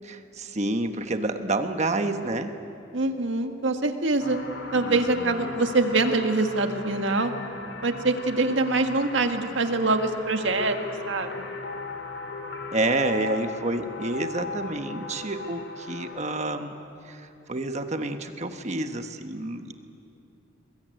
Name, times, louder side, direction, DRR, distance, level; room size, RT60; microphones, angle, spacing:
voice 1, 0.0-2.5 4.8-5.6 12.7-16.8 17.0-19.7, right 2 dB, 35° right, 7 dB, 1.2 m, -29 dB
voice 2, 2.9-4.4 4.7-7.3 7.8-10.8 11.1-11.5, right 3 dB, 75° right, 6 dB, 1.8 m, -24 dB
sound 1, 4.2-16.5, left 3 dB, 75° left, 3.0 m, -38 dB
22.5 x 21.5 x 9.3 m, 2.8 s
head